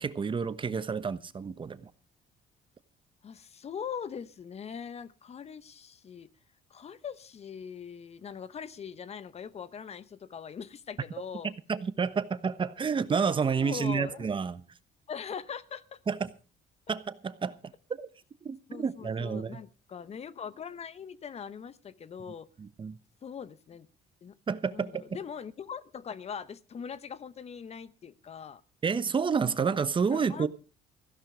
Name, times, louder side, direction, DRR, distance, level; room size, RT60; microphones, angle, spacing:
voice 1, 0.0-1.9 11.4-14.6 16.1-16.3 16.9-18.1 18.4-19.6 22.6-23.0 24.5-25.0 28.8-30.5, right 5 dB, 30° right, 1.1 m, -30 dB
voice 2, 3.2-6.3 6.7-11.5 13.6-14.3 15.1-16.0 18.7-22.5 23.2-23.9 24.2-24.3 24.7-28.6 30.1-30.5, left 7 dB, 40° left, 0.9 m, -41 dB
15.5 x 11.5 x 4.9 m
cardioid pair, 110°, 17 cm